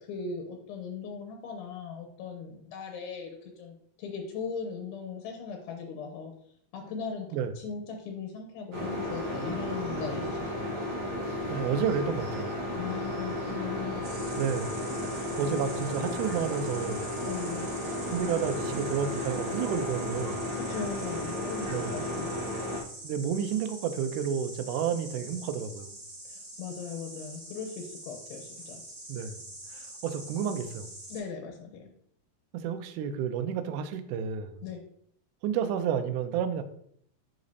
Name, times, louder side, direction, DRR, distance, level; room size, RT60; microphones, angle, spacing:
voice 1, 0.0-6.3 6.7-10.7 12.7-14.1 17.2-17.7 20.5-22.4 26.3-28.8 31.1-31.9 34.6-34.8, left 5 dB, 80° left, 2 dB, 2.6 m, -39 dB
sound 1, 8.7-22.8, left 1 dB, 55° right, 1.5 m, -34 dB
voice 2, 11.5-12.5 14.4-14.8 15.4-17.1 18.1-20.4 21.7-21.9 23.0-25.9 29.1-29.4 30.0-31.0 32.5-34.6 35.4-36.6, right 7 dB, 90° right, 8 dB, 1.8 m, -30 dB
Insect, 14.0-31.2, right 1 dB, 35° right, 3.4 m, -45 dB
9.8 x 4.0 x 2.7 m, 0.68 s
omnidirectional pair, 4.3 m